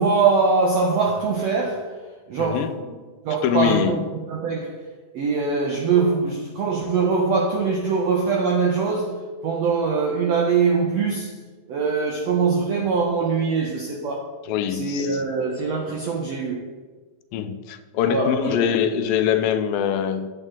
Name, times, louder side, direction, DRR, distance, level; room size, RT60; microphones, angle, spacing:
voice 1, 0.0-2.0 2.3-2.9 3.2-4.0 4.3-4.8 5.1-11.4 11.7-14.3 14.7-16.7 18.1-18.6, right 4 dB, 80° right, 1.4 m, -22 dB
voice 2, 2.4-2.7 3.4-4.0 14.5-15.2 17.3-20.3, left 9 dB, 85° left, 2.3 m, -23 dB
9.1 x 8.1 x 3.7 m
omnidirectional pair, 4.0 m